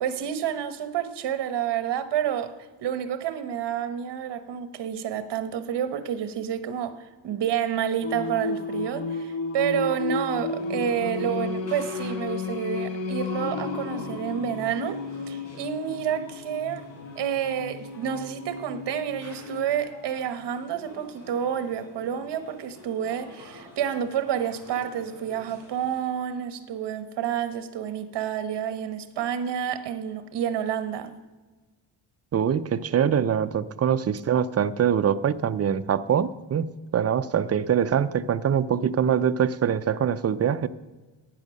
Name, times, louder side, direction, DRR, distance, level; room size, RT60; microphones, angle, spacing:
voice 1, 0.0-16.9 17.2-31.1, right 9 dB, 60° right, 1.2 m, -29 dB
Singing, 8.0-19.8, left 3 dB, 75° left, 1.5 m, -33 dB
sound 1, 10.3-26.0, left 2 dB, 35° left, 4.4 m, -49 dB
voice 2, 32.3-36.7 36.9-40.7, right 8 dB, 35° right, 0.5 m, -23 dB
10.5 x 9.3 x 6.3 m
cardioid pair, 105°, 46 cm